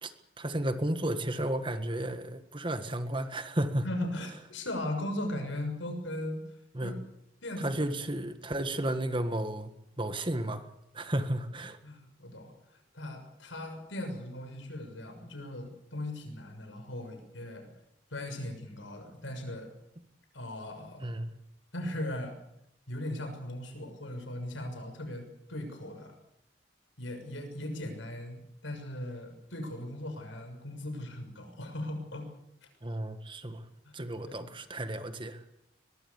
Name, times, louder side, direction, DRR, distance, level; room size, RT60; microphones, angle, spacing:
voice 1, 0.0-3.8 6.7-6.9 7.6-9.7 10.0-10.7 10.9-11.8 21.0-21.3 32.8-33.6 33.9-35.4, right 1 dB, 25° right, 9 dB, 1.7 m, -33 dB
voice 2, 3.8-6.4 6.8-7.0 7.4-7.8 8.6-8.7 11.8-17.7 18.1-19.7 20.3-21.1 21.7-22.3 22.9-26.1 27.0-32.3 33.8-34.5, left 1 dB, 85° left, 6 dB, 6.6 m, -38 dB
23.0 x 21.5 x 7.2 m, 0.78 s
head